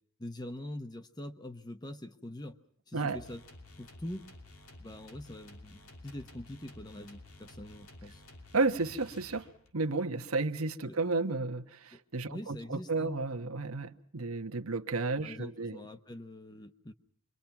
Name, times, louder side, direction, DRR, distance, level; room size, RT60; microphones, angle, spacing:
voice 1, 0.2-2.6 2.9-3.4 3.8-4.3 4.8-8.2 10.8-11.0 11.9-12.0 12.3-13.1 15.2-16.9, left 1 dB, 20° left, 1.0 m, -44 dB
sound 1, 3.1-9.8, left 2 dB, 85° left, 2.8 m, -53 dB
voice 2, 8.5-9.5 9.7-15.8, right 3 dB, 80° right, 1.2 m, -32 dB
26.5 x 23.5 x 5.9 m
head